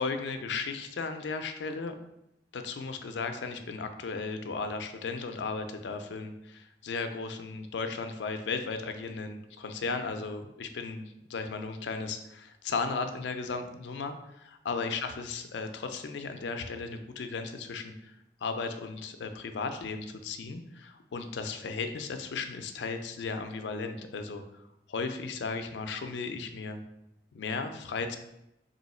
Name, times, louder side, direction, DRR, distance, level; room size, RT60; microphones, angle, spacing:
voice 1, 0.0-1.9 2.5-11.0 11.3-18.1 18.4-26.8 27.3-28.2, left 4 dB, 90° left, 7 dB, 0.4 m, -35 dB
3.0 x 2.7 x 4.2 m, 0.84 s
head